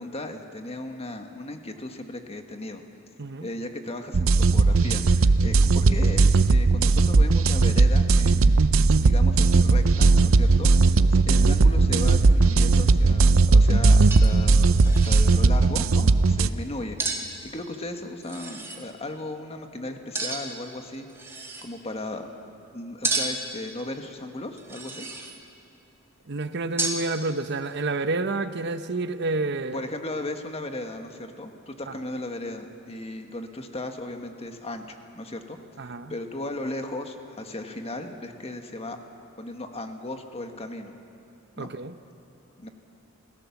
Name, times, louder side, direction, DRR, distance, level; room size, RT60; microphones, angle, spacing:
voice 1, 0.0-2.8 3.4-21.1 21.3-22.3 22.7-25.1 29.7-35.6 35.8-39.0 39.4-41.0 41.6-41.7 42.6-42.7, left 1 dB, 30° left, 5 dB, 1.5 m, -36 dB
sound 1, 4.1-16.5, right 3 dB, 85° right, 0.6 m, -18 dB
sound 2, 13.6-13.7 14.1-14.4 14.7-15.3 17.0-17.3 18.2-18.8 20.1-20.6 21.1-21.7 23.0-23.5 24.6-25.4 26.8-27.1, right 2 dB, 10° right, 2.0 m, -31 dB
voice 2, 26.3-29.8 35.8-36.1 41.6-41.9, right 3 dB, 55° right, 11 dB, 0.9 m, -29 dB
27.5 x 16.5 x 7.2 m, 2.6 s
head